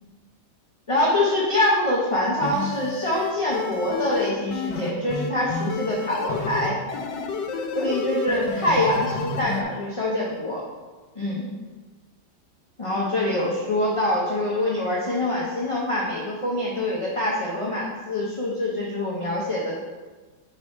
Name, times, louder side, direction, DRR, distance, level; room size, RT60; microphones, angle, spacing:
voice 1, 0.9-6.7 7.7-10.6 11.2-11.5 12.8-19.7, left 1 dB, 30° left, -5 dB, 0.6 m, -25 dB
sound 1, 2.4-9.6, left 4 dB, 85° left, 1.3 m, -30 dB
5.3 x 4.7 x 4.2 m, 1.3 s
omnidirectional pair, 1.9 m